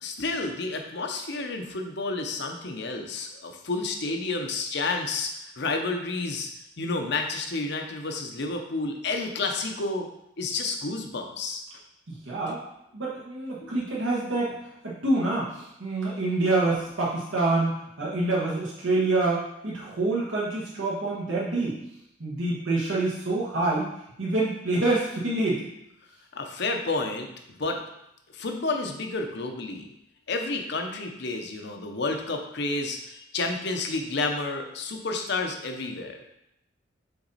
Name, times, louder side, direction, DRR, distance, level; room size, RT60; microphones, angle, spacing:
voice 1, 0.0-6.5 6.8-10.1 10.4-11.6 13.6-13.7 26.3-27.3 27.6-27.8 28.3-29.9 30.3-36.2, left 3 dB, 55° left, 4 dB, 0.8 m, -30 dB
voice 2, 12.2-12.6 12.9-14.5 15.0-17.7 18.0-21.8 22.2-23.9 24.2-25.6, right 2 dB, 70° right, -6 dB, 1.3 m, -26 dB
6.0 x 4.1 x 4.1 m, 0.80 s
head